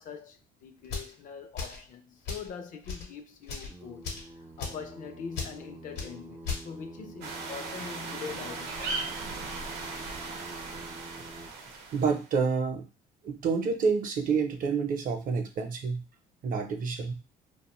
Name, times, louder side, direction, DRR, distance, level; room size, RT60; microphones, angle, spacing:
voice 1, 0.0-9.1, left 6 dB, 50° left, 0.4 m, -43 dB
sound 1, 0.8-1.1 1.6-1.8 2.3-2.5 2.8-3.1 3.4-3.7 4.0-4.3 4.6-4.8 5.3-5.5 6.0-6.1 6.4-6.7, left 5 dB, 80° left, 0.9 m, -36 dB
Singing, 3.6-11.5, right 1 dB, 10° right, 0.3 m, -47 dB
sound 2, 7.2-12.3, right 4 dB, 90° right, 0.7 m, -38 dB
voice 2, 11.9-12.8 13.2-16.0 16.4-17.1, right 5 dB, 55° right, 0.6 m, -28 dB
2.4 x 2.2 x 2.9 m
cardioid pair, 110°, 17 cm